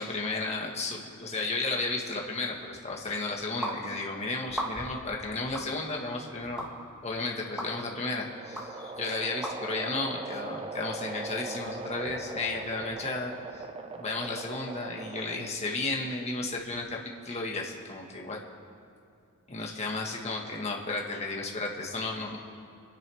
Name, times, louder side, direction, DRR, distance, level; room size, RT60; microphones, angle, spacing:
voice 1, 0.0-6.6 7.0-13.6 14.0-17.0 17.2-18.4 19.5-22.4, left 3 dB, 30° left, -1 dB, 1.5 m, -33 dB
sound 1, 3.6-3.8 4.5-5.0 5.6-5.7 6.6-6.7 7.6-7.7 8.6-8.7 9.4-9.6, right 1 dB, 5° right, 1.6 m, -34 dB
sound 2, 7.8-15.7, right 3 dB, 25° right, 0.5 m, -40 dB
26.5 x 10.5 x 3.5 m, 2.5 s
head